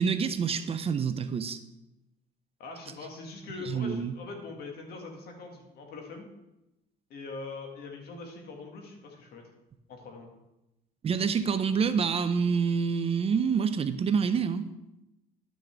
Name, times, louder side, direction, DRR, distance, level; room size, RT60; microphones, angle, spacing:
voice 1, 0.0-1.6 3.7-4.1 11.0-14.7, right 6 dB, 35° right, 11 dB, 0.5 m, -27 dB
voice 2, 2.6-6.3 7.1-9.4 9.9-10.3, left 4 dB, 65° left, 2 dB, 1.9 m, -42 dB
11.5 x 6.2 x 3.4 m, 0.93 s
cardioid pair, 110°, 17 cm